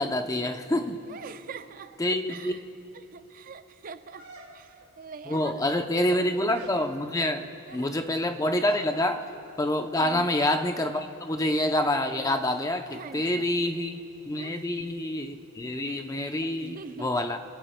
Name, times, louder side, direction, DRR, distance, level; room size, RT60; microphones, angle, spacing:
voice 1, 0.0-1.0 2.0-2.5 5.3-7.5 7.7-9.3 9.6-17.4, left 1 dB, 15° left, 6 dB, 0.6 m, -27 dB
voice 2, 1.1-2.0 2.3-2.6 2.9-4.3 4.5-6.0 7.7-7.9 10.0-10.3 12.9-13.4 14.3-14.6 16.4-17.1, right 5 dB, 45° right, 11 dB, 0.4 m, -43 dB
sound 1, 4.2-4.9 5.7-6.2 6.5-6.9 8.7-9.0, right 2 dB, 70° right, 2.4 m, -47 dB
26.0 x 17.5 x 2.2 m, 2.8 s
head